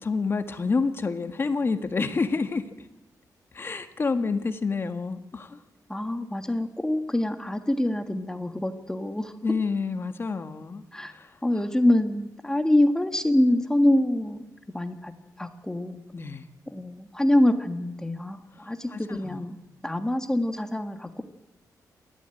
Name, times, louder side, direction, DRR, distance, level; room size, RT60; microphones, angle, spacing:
voice 1, 0.0-2.6 3.5-5.6 9.4-10.8 11.1-11.3 16.1-16.4 18.9-19.4, left 4 dB, 35° left, 8 dB, 1.6 m, -28 dB
voice 2, 5.9-9.3 10.9-11.1 11.4-14.4 14.7-15.1 15.4-16.0 16.7-21.2, left 1 dB, 10° left, 7 dB, 1.5 m, -25 dB
28.5 x 13.5 x 9.0 m, 0.94 s
wide cardioid pair, 150°, 7 cm